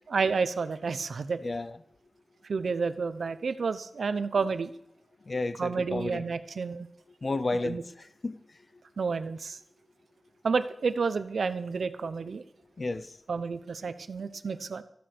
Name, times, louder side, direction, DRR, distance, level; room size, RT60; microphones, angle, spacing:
voice 1, 0.1-1.4 2.5-4.7 5.6-6.9 7.6-7.8 9.0-9.6 10.4-12.4 13.3-14.8, right 5 dB, 70° right, 0.9 m, -30 dB
voice 2, 1.4-1.8 5.3-6.2 7.2-8.4 12.8-13.2, left 2 dB, 40° left, 0.6 m, -32 dB
14.0 x 9.5 x 6.2 m
wide cardioid pair, 135°, 0 cm